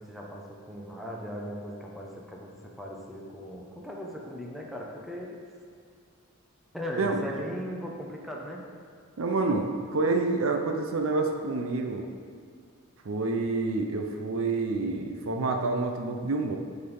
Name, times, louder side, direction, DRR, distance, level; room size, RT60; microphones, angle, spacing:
voice 1, 0.0-5.4 6.7-8.6, equal, ahead, -2 dB, 0.8 m, -38 dB
voice 2, 9.2-12.1 13.0-16.6, right 3 dB, 65° right, 4 dB, 0.6 m, -28 dB
8.3 x 4.1 x 5.4 m, 2.2 s
head